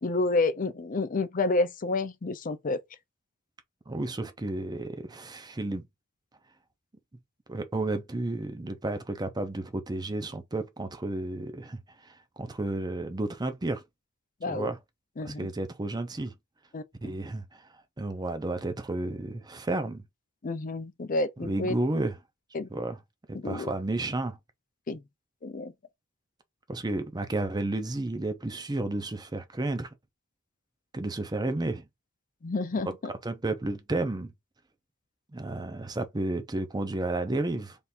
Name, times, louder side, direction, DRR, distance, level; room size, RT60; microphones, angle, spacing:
voice 1, 0.0-2.8 14.4-14.7 15.2-15.5 16.7-16.8 20.4-21.7 22.5-22.7 23.3-23.7 24.9-25.0 25.4-25.7 32.4-32.9, left 3 dB, 40° left, 0.5 m, -29 dB
voice 2, 3.9-5.9 7.5-13.8 14.5-14.8 15.2-16.3 17.0-17.6 18.0-20.0 21.4-22.2 22.7-23.0 23.3-24.4 26.7-29.9 30.9-31.9 32.8-32.9 33.2-34.3 35.3-37.8, right 2 dB, 20° right, 0.6 m, -32 dB
3.5 x 2.6 x 4.2 m
head